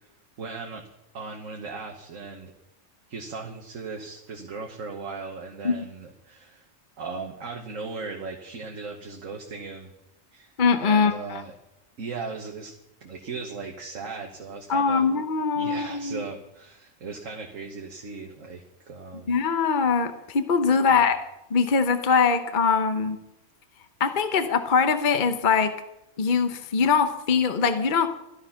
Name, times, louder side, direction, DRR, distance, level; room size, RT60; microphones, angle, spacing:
voice 1, 0.4-0.8 1.1-2.5 3.1-6.7 7.0-9.9 10.3-10.5 10.8-11.5 12.0-12.7 13.0-15.1 15.6-19.3 20.7-21.1, right 4 dB, 85° right, 1 dB, 1.7 m, -37 dB
voice 2, 10.6-11.4 14.7-16.3 19.3-21.2 21.5-23.2 24.0-25.7 26.2-28.1, left 5 dB, 45° left, 8 dB, 1.0 m, -22 dB
13.5 x 12.5 x 5.8 m, 0.87 s
omnidirectional pair, 1.3 m